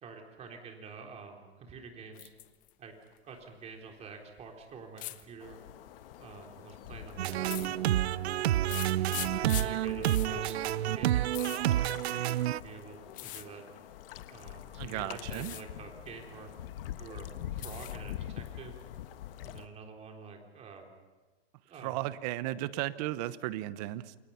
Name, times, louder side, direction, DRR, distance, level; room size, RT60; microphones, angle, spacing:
voice 1, 0.0-2.3 2.8-3.0 3.2-5.6 6.2-7.8 8.4-10.6 10.9-11.8 12.5-13.6 14.3-16.5 17.0-18.8 19.4-20.9 21.7-22.0, right 5 dB, 20° right, 2 dB, 3.8 m, -48 dB
sound 1, 2.1-2.7 3.0-3.7 5.0-5.2 6.1-6.5 7.4-8.2 8.7-12.5 13.1-13.5 14.4-14.8 15.2-15.6 16.0-16.8 17.2-18.1 18.5-19.1, left 16 dB, 25° left, 0.9 m, -43 dB
sound 2, 5.4-19.7, left 11 dB, 60° left, 1.5 m, -45 dB
sound 3, 7.2-12.6, right 13 dB, 75° right, 0.6 m, -29 dB
voice 2, 14.8-15.5 21.8-24.2, right 15 dB, 40° right, 15 dB, 1.0 m, -35 dB
29.0 x 22.0 x 5.8 m, 1.3 s
hypercardioid pair, 145°, 32 cm